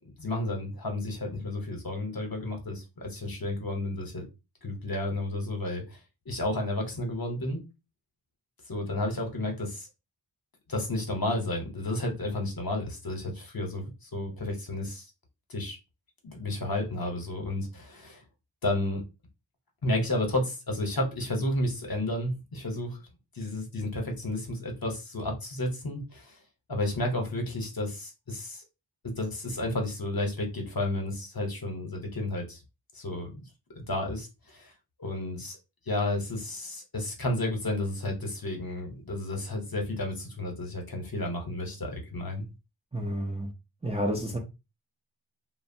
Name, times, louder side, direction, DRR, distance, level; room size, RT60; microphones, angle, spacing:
voice 1, 0.2-4.2 4.6-6.0 6.3-7.6 8.7-9.9 10.7-15.0 15.5-15.8 16.2-18.2 18.6-19.0 19.8-23.0 23.3-26.4 26.7-28.6 29.0-32.6 32.9-33.4 33.7-34.7 35.0-35.6 35.9-42.5, left 1 dB, 45° left, 0.9 m, -32 dB
voice 2, 42.9-43.5 43.8-44.4, equal, 15° right, 0.5 m, -30 dB
2.7 x 2.1 x 2.6 m
wide cardioid pair, 45°, 48 cm